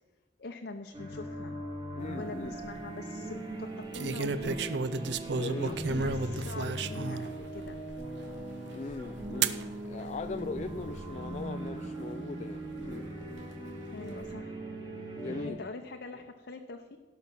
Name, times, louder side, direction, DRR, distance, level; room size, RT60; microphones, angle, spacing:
voice 1, 0.4-1.7 2.1-4.7 5.3-7.8 13.9-14.6 15.4-17.0, left 3 dB, 60° left, 4 dB, 0.7 m, -44 dB
sound 1, 0.9-15.5, right 1 dB, 25° right, 1.9 m, -40 dB
voice 2, 2.0-2.5 5.3-5.8 8.7-13.1 15.2-15.6, left 3 dB, 40° left, 9 dB, 0.4 m, -40 dB
sound 2, 2.3-2.7 3.9-7.3 7.9-8.0 9.4-9.6 10.5-11.0, right 4 dB, 65° right, 0.6 m, -32 dB
sound 3, 5.5-14.3, right 1 dB, 90° right, 2.4 m, -54 dB
17.5 x 5.9 x 6.0 m, 1.2 s
head